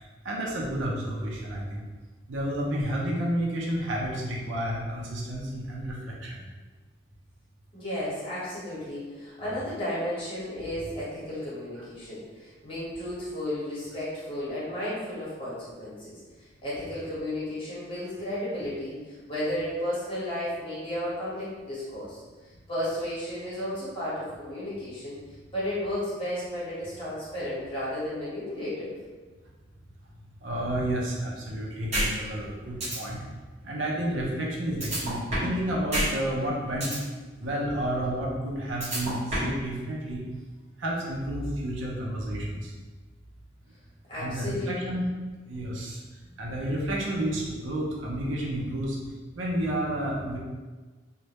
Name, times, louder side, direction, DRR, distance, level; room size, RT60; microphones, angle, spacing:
voice 1, 0.2-1.8 2.3-6.4 30.4-33.2 33.6-36.9 37.4-40.2 40.8-42.7 44.2-45.1 45.5-46.0 46.4-49.0 49.4-50.4, right 1 dB, 70° right, -2 dB, 0.5 m, -30 dB
voice 2, 7.7-22.2 22.7-25.2 25.5-29.0 44.1-44.9, left 1 dB, 30° left, -10 dB, 1.0 m, -33 dB
sound 1, 31.9-32.1 32.4-32.5 32.8-33.0 34.8-35.6 35.9-36.1 36.4-37.0 38.8-39.6, right 1 dB, 35° right, 0.8 m, -27 dB
2.1 x 2.0 x 2.8 m, 1.3 s
head